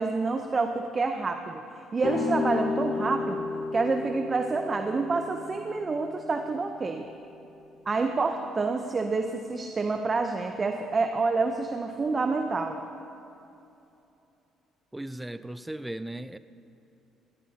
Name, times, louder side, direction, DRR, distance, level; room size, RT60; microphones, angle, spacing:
voice 1, 0.0-7.1 7.9-12.8, right 3 dB, 35° right, 6 dB, 0.8 m, -28 dB
sound 1, 2.0-7.8, left 4 dB, 65° left, 2.2 m, -34 dB
voice 2, 14.9-16.4, right 1 dB, 10° right, 13 dB, 0.5 m, -37 dB
18.0 x 17.5 x 2.9 m, 2.9 s
supercardioid pair, 65°, 0 cm